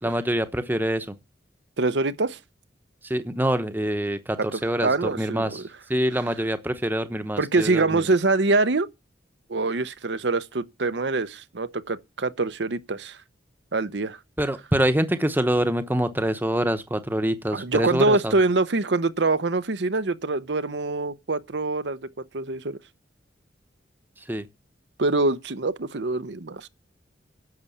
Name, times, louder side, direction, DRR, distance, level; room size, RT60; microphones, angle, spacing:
voice 1, 0.0-1.1 3.0-5.6 5.9-8.0 14.4-18.3 24.3-24.5, right 1 dB, 10° right, 1.0 m, -25 dB
voice 2, 1.8-2.4 4.5-5.6 7.4-8.9 9.5-13.2 13.7-14.2 17.5-22.0 22.3-22.8 25.0-26.7, right 3 dB, 70° right, 0.8 m, -24 dB
11.0 x 6.9 x 8.5 m
head